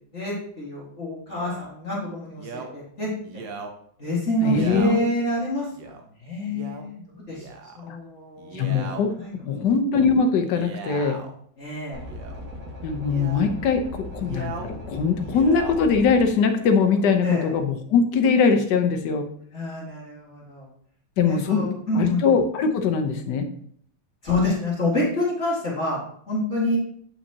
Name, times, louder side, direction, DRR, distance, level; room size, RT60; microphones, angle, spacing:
voice 1, 0.0-3.1 4.0-5.7 6.2-7.5 7.7-9.5 11.6-12.0 17.2-17.5 19.5-20.7 21.2-22.2 24.2-26.8, left 1 dB, 35° left, -6 dB, 2.1 m, -27 dB
Male speech man speaking, 1.3-1.7 2.4-2.7 3.2-3.7 4.5-5.0 5.7-6.0 6.5-6.8 7.3-7.9 8.4-9.0 10.4-11.3 12.0-12.4 13.0-13.5 14.2-14.7 15.1-15.8 16.5-17.0, right 4 dB, 70° right, 1.5 m, -38 dB
voice 2, 4.4-5.0 7.9-8.0 8.5-9.1 9.5-11.2 12.8-19.3 21.2-21.7 22.0-23.5, left 5 dB, 65° left, 6 dB, 1.4 m, -21 dB
sound 1, 11.9-16.3, left 1 dB, 45° right, 2.1 m, -38 dB
8.5 x 5.6 x 2.8 m, 0.63 s
omnidirectional pair, 2.2 m